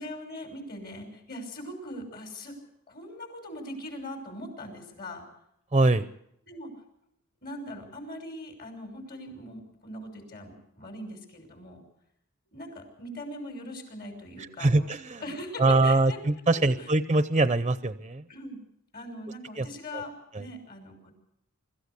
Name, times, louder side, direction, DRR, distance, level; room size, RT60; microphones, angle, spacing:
voice 1, 0.0-2.5 2.9-5.2 6.5-6.7 7.4-11.8 12.5-16.2 16.5-16.9 18.3-18.6 18.9-21.1, left 1 dB, 50° left, 4 dB, 6.1 m, -41 dB
voice 2, 5.7-6.1 14.6-15.2 15.6-18.2 19.6-19.7 20.3-20.4, right 2 dB, 25° right, 12 dB, 0.7 m, -23 dB
24.5 x 14.5 x 8.3 m, 0.77 s
head